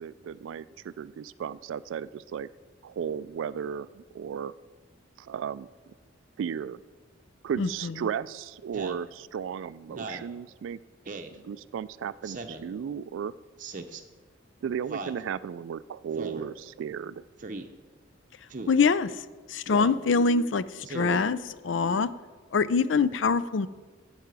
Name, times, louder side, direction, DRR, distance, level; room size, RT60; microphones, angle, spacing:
voice 1, 0.0-2.5 2.8-4.5 5.2-5.7 6.4-6.8 7.4-10.8 11.4-13.3 14.6-17.2, right 7 dB, 75° right, 18 dB, 0.3 m, -35 dB
voice 2, 7.6-7.9 18.7-19.2 19.5-22.1 22.5-23.7, left 4 dB, 70° left, 16 dB, 0.4 m, -24 dB
Speech synthesizer, 8.7-9.0 9.9-10.3 11.1-11.4 12.2-12.7 13.6-14.0 14.9-15.2 16.2-16.5 17.4-17.7 18.5-18.8 19.7-20.0 20.8-21.2, right 3 dB, 40° right, 0.7 m, -38 dB
12.5 x 4.8 x 8.1 m, 1.3 s
head